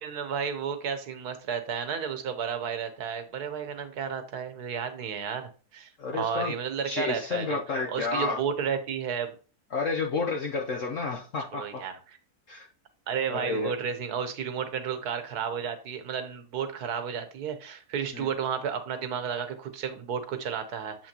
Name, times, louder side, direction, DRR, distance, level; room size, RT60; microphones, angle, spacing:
voice 1, 0.0-7.6 7.9-9.4 11.5-12.2 13.1-21.1, right 7 dB, 70° right, 8 dB, 1.5 m, -32 dB
voice 2, 6.0-6.5 6.8-8.4 9.7-11.8 12.5-12.7 13.3-13.7 18.1-18.3, left 4 dB, 55° left, 1 dB, 1.1 m, -30 dB
7.4 x 5.9 x 2.8 m, 0.36 s
omnidirectional pair, 1.7 m